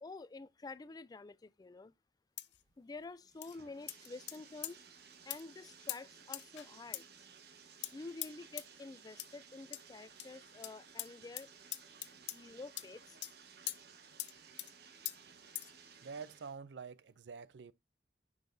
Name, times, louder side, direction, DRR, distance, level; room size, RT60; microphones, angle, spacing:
voice 1, 0.0-1.9 2.8-4.8 5.3-7.0 7.9-11.5 12.3-13.2, left 3 dB, 20° left, 0.3 m, -49 dB
sound 1, 2.4-2.6 3.4-3.6 3.9-4.4 4.6-4.7 5.3-5.4 5.9-6.0 6.3-6.7 6.9-7.0 7.8-7.9 8.2-8.3 8.6-8.7 9.2-9.3 9.7-9.8 10.2-10.3 10.6-10.7 11.0-11.1 11.4-11.5 11.7-12.4 12.8-12.9 13.2-13.3 13.7-13.8 14.2-14.3 14.6-14.7 15.1-15.2 15.6-15.7, left 16 dB, 80° left, 0.5 m, -41 dB
Bathtub (filling or washing), 2.5-16.6, right 6 dB, 65° right, 1.2 m, -58 dB
voice 2, 16.0-17.7, right 5 dB, 90° right, 0.5 m, -47 dB
9.0 x 5.6 x 2.7 m
head